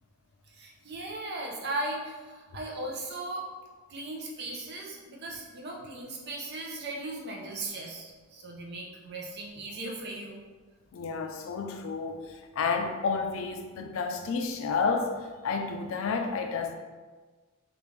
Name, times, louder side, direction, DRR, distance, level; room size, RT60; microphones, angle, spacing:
voice 1, 0.5-3.5 3.9-10.4, right 2 dB, 50° right, 0.6 m, -37 dB
voice 2, 10.9-16.7, left 4 dB, 65° left, 0.4 m, -31 dB
3.4 x 2.5 x 3.1 m
head